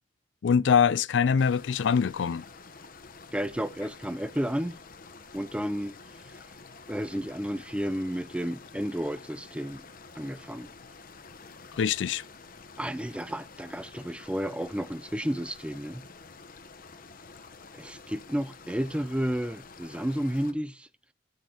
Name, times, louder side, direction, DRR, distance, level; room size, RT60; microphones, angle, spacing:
voice 1, 0.4-2.4 11.8-12.2, left 6 dB, 75° left, 0.4 m, -23 dB
sound 1, 1.4-20.5, left 4 dB, 50° left, 1.0 m, -49 dB
voice 2, 3.3-4.8 5.3-6.0 6.9-9.8 10.2-10.7 12.8-16.0 17.7-20.9, equal, 5° right, 0.6 m, -32 dB
12.5 x 7.3 x 2.9 m
head